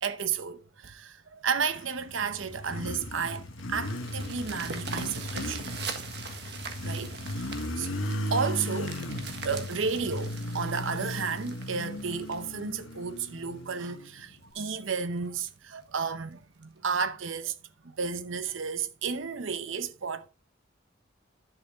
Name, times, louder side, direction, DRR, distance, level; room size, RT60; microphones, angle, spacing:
voice 1, 0.0-5.9 6.8-17.6 17.8-20.3, right 5 dB, 80° right, 0.8 m, -33 dB
Motorcycle, 1.8-14.5, left 1 dB, 90° left, 1.1 m, -36 dB
sound 1, 3.0-13.5 14.0-14.1 14.6-14.7 15.0-15.1 15.5-15.7 16.6-16.7, right 5 dB, 55° right, 1.5 m, -42 dB
11.0 x 7.0 x 3.5 m
head